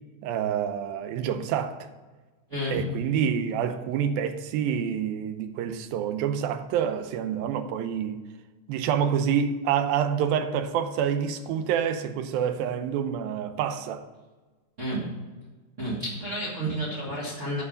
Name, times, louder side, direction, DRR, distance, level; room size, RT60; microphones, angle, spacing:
voice 1, 0.2-1.9 2.7-8.2 8.7-14.0, right 8 dB, 85° right, 2.5 m, -27 dB
voice 2, 2.5-2.8 14.8-15.1 15.8-17.6, right 1 dB, 45° right, 0.9 m, -31 dB
8.7 x 4.9 x 6.7 m
omnidirectional pair, 4.1 m